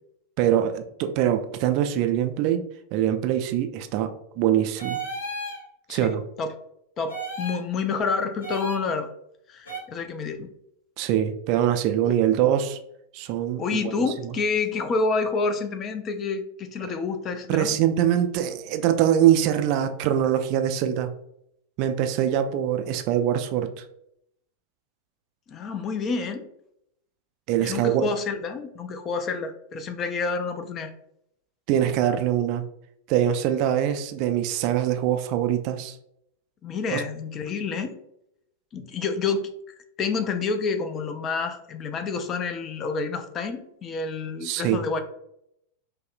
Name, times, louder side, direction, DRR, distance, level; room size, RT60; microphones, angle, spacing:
voice 1, 0.4-2.6 2.9-5.0 5.9-6.2 11.0-12.8 13.1-13.6 14.2-14.3 17.5-21.1 21.8-23.8 27.5-28.0 31.7-32.6 33.1-36.0 36.9-37.0 44.4-44.8, right 10 dB, 45° right, 8 dB, 0.3 m, -23 dB
sound 1, 4.8-5.6 7.1-7.6 8.4-8.8 9.7-9.8, right 2 dB, 70° left, 1.2 m, -33 dB
voice 2, 5.9-6.5 7.0-9.1 9.5-10.5 12.0-12.1 13.6-17.7 25.5-26.5 27.6-30.9 36.6-37.9 38.7-39.5 40.0-45.0, left 4 dB, 30° left, 8 dB, 0.4 m, -28 dB
5.2 x 2.1 x 2.3 m, 0.76 s
figure-of-eight pair, 90°, 0 cm